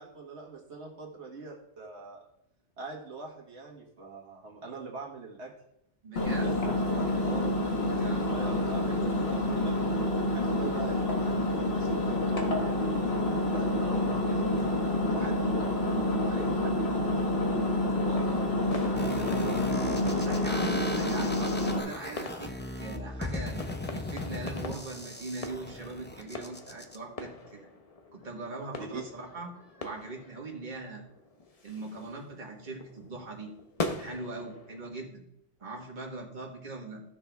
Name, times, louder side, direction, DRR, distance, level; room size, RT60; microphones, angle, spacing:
voice 1, 0.0-2.2 2.8-5.5 6.2-9.9 10.3-12.9 13.5-17.5 18.0-18.9 19.2-20.3 28.8-29.0, right 3 dB, 85° right, -1 dB, 1.8 m, -42 dB
voice 2, 6.0-6.6 8.0-9.0 18.2-18.6 20.1-23.6 23.9-27.7 28.1-29.5 29.8-31.0 31.6-33.5 34.0-35.2 35.6-37.0, right 2 dB, 45° right, -1 dB, 1.7 m, -41 dB
Engine, 6.2-21.8, left 1 dB, 65° left, 1.6 m, -28 dB
sound 1, 17.6-35.0, left 3 dB, 35° left, 0.8 m, -43 dB
sound 2, 19.0-27.0, left 1 dB, 15° left, 0.5 m, -37 dB
14.0 x 6.0 x 3.5 m, 0.79 s
omnidirectional pair, 1.1 m